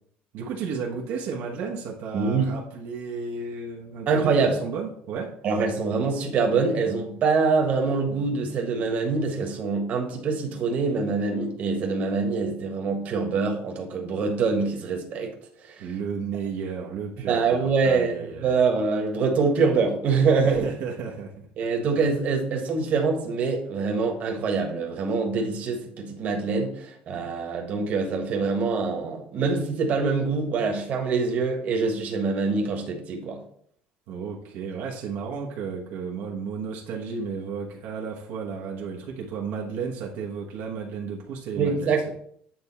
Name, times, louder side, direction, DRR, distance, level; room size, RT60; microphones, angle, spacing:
voice 1, 0.3-5.4 15.8-18.5 20.4-21.5 34.1-42.1, right 5 dB, 70° right, -1 dB, 1.1 m, -33 dB
voice 2, 2.1-2.5 4.1-4.5 5.4-15.3 15.7-15.8 17.3-18.1 18.4-20.6 21.6-33.4 41.6-42.0, right 4 dB, 45° right, 2 dB, 1.4 m, -24 dB
8.9 x 3.5 x 4.2 m, 0.64 s
cardioid pair, 145°, 4 cm